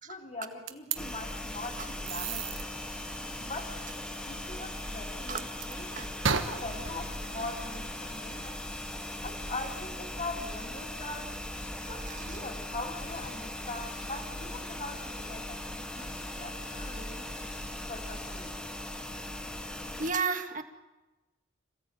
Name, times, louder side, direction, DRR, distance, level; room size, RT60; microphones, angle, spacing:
voice 1, 0.1-2.6 3.4-8.6 9.2-11.3 11.9-17.2 17.9-18.6, left 2 dB, 35° left, -2 dB, 2.8 m, -42 dB
sound 1, 0.7-1.0 2.1-2.6 5.3-5.7 6.2-8.5, right 6 dB, 70° right, 1.3 m, -34 dB
sound 2, 1.0-20.1, left 1 dB, 5° left, 1.7 m, -39 dB
sound 3, 1.5-9.9 10.3-10.6 11.0-11.2 11.5-11.8 12.2-12.5 13.0-13.4 13.7-14.6 14.8-15.3 15.9-18.5, left 4 dB, 85° left, 7.9 m, -54 dB
voice 2, 11.8-12.3 20.0-20.6, right 5 dB, 40° right, 6 dB, 1.8 m, -33 dB
27.0 x 16.5 x 9.0 m, 1.1 s
head